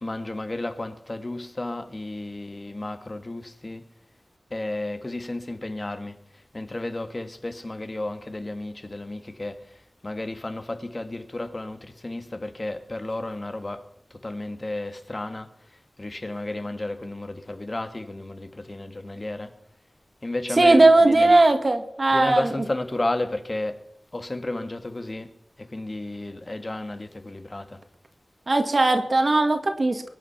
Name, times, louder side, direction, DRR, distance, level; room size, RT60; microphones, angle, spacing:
voice 1, 0.0-3.9 4.5-19.6 20.2-21.3 22.1-23.9 24.1-25.3 25.6-27.8, left 2 dB, 35° left, 1.5 m, -33 dB
voice 2, 20.6-22.4 28.5-30.1, right 2 dB, 50° right, 2.0 m, -18 dB
22.5 x 8.4 x 5.8 m
wide cardioid pair, 75°, 0 cm